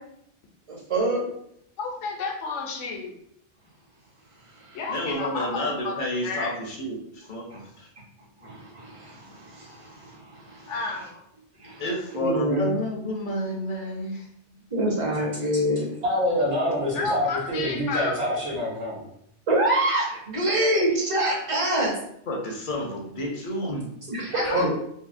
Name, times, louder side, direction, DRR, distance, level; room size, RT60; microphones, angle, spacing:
voice 1, 0.7-1.2 4.7-4.8 7.5-7.6 8.4-10.7 11.6-11.8 12.1-12.7 14.7-15.9 19.5-22.0 24.1-24.7, right 1 dB, 35° right, -3 dB, 0.6 m, -26 dB
voice 2, 1.8-3.1 4.7-5.9 6.2-6.6 10.7-11.2 15.2-15.3 16.9-18.1 24.3-24.7, left 3 dB, 85° left, 1 dB, 0.9 m, -31 dB
voice 3, 4.9-7.4 7.8-7.9 11.8-14.2 22.3-23.9, equal, 55° left, 0 dB, 0.6 m, -30 dB
voice 4, 16.0-19.1 24.4-24.7, equal, 70° right, -6 dB, 1.0 m, -26 dB
2.7 x 2.6 x 2.5 m, 0.72 s
omnidirectional pair, 1.2 m